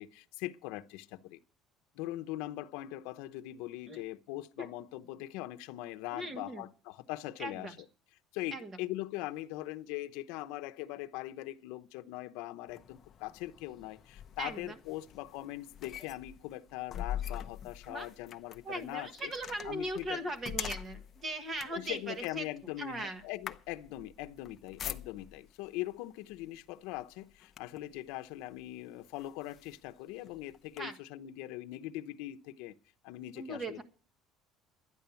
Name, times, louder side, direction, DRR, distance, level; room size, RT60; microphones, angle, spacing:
voice 1, 0.0-1.4 1.9-7.9 8.3-19.3 19.6-20.3 21.7-32.7 33.0-33.8, left 16 dB, 85° left, 0.8 m, -41 dB
voice 2, 6.1-6.6 7.4-7.7 8.5-8.8 14.4-14.8 17.9-18.1 18.6-22.4 22.8-23.2 30.8-31.0 33.4-33.8, right 1 dB, 25° right, 1.4 m, -39 dB
sound 1, 12.7-25.5 26.3-26.6 26.9-28.0 28.6-28.7 29.1-30.8, left 9 dB, 30° left, 0.7 m, -44 dB
12.0 x 9.7 x 7.0 m
cardioid pair, 170°, 0 cm